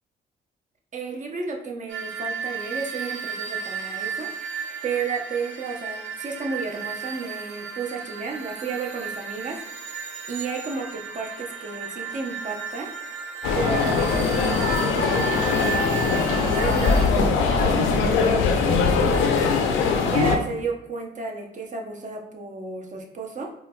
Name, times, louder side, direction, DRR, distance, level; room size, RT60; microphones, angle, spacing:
voice 1, 0.9-9.6 10.3-12.9 13.5-15.9 16.5-19.5 19.7-23.5, right 4 dB, 40° right, 1 dB, 0.6 m, -33 dB
sound 1, 1.9-17.1, right 6 dB, 80° right, 0.7 m, -34 dB
sound 2, 13.4-20.4, left 5 dB, 85° left, 0.5 m, -21 dB
4.4 x 2.2 x 2.2 m, 0.91 s
cardioid pair, 90°, 20 cm